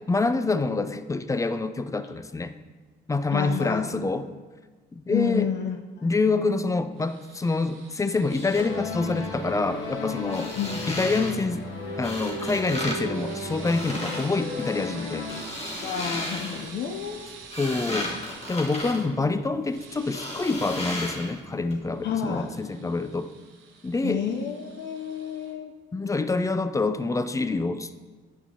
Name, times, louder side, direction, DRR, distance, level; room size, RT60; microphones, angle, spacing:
voice 1, 0.1-2.5 3.1-4.3 4.9-5.5 6.0-10.5 10.9-11.6 12.0-15.3 17.6-18.1 18.5-23.3 23.8-24.2 25.9-28.0, left 3 dB, 15° left, 11 dB, 0.4 m, -26 dB
voice 2, 3.3-3.8 5.1-6.0 10.6-10.8 15.8-17.3 22.0-22.5 24.0-25.7, left 7 dB, 65° left, 5 dB, 0.6 m, -30 dB
sound 1, 7.0-12.2 13.0-18.5 19.6-20.8 21.9-25.5, right 5 dB, 85° right, 0.9 m, -48 dB
sound 2, 8.2-8.6 10.2-11.3 12.0-13.0 13.3-14.3 15.1-16.7 17.2-19.7 20.1-21.4 21.7-21.8, left 1 dB, 35° left, 1.5 m, -34 dB
sound 3, 8.6-15.4, left 2 dB, 80° left, 1.1 m, -35 dB
9.1 x 5.8 x 2.8 m, 1.4 s
cardioid pair, 90°, 20 cm